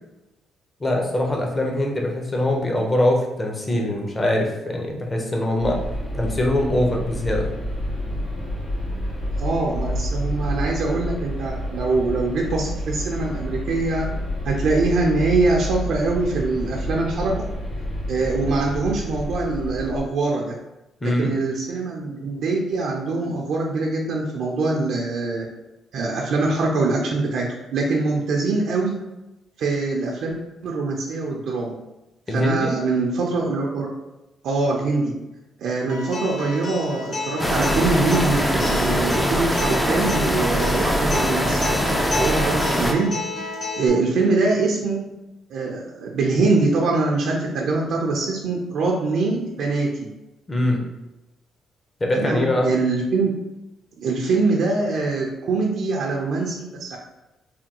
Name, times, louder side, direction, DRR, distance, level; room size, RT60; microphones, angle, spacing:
voice 1, 0.8-5.8 6.1-7.5 21.0-21.3 32.3-32.8 50.5-50.8 52.0-52.7, left 1 dB, 25° left, 0 dB, 0.7 m, -22 dB
sound 1, 5.6-20.0, equal, 90° left, 1.5 m, -29 dB
voice 2, 9.3-14.0 14.4-17.3 18.1-20.5 21.0-25.4 25.9-28.9 29.6-30.3 30.6-31.7 32.3-33.9 34.4-35.1 35.6-43.2 43.4-45.0 45.5-49.9 52.1-53.3 54.0-57.0, right 3 dB, 75° right, -1 dB, 0.5 m, -23 dB
Acoustic guitar, 35.9-43.9, left 3 dB, 60° left, 0.9 m, -30 dB
sound 2, 37.4-42.9, equal, ahead, 0.3 m, -22 dB
3.3 x 2.2 x 2.9 m, 0.97 s
cardioid pair, 90°, 0 cm